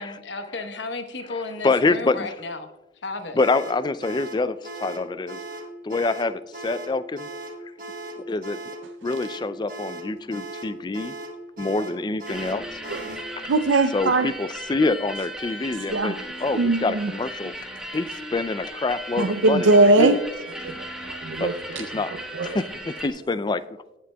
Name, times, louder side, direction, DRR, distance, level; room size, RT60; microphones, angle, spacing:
voice 1, 0.0-2.7 3.0-3.4, left 3 dB, 70° left, 1.0 m, -33 dB
voice 2, 1.3-2.3 3.3-5.4 5.8-7.3 8.3-8.6 9.0-11.2 11.6-12.8 13.9-17.5 17.9-19.7 20.0-20.2 21.4-21.5 21.8-22.1 22.4-23.6, left 3 dB, 25° left, 0.3 m, -26 dB
sound 1, 3.4-13.3, right 2 dB, 50° right, 1.3 m, -37 dB
sound 2, 12.3-23.1, right 1 dB, 5° right, 1.3 m, -37 dB
voice 3, 13.5-14.3 15.9-16.1 16.5-17.1 19.2-20.2 20.6-21.6 22.3-22.6, right 2 dB, 85° right, 0.5 m, -20 dB
19.5 x 7.5 x 2.2 m
head